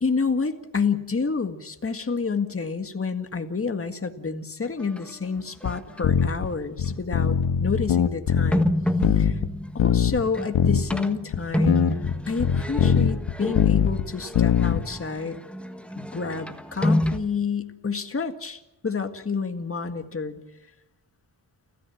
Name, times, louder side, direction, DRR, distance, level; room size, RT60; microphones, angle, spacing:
voice 1, 0.0-8.7 9.2-9.4 9.7-11.8 12.3-15.4 16.0-20.4, left 5 dB, 30° left, 7 dB, 1.9 m, -29 dB
sound 1, 4.6-5.1 5.6-6.2 6.9-7.0 8.5-17.2, left 1 dB, 5° left, 1.5 m, -29 dB
sound 2, 5.6-5.7 6.0-6.5 6.8-8.7 9.0-9.5 9.8-10.2 10.5-10.8 11.3-11.4 11.7-14.1 14.3-14.8, left 8 dB, 85° left, 1.4 m, -21 dB
30.0 x 14.0 x 7.3 m, 0.96 s
wide cardioid pair, 120°, 45 cm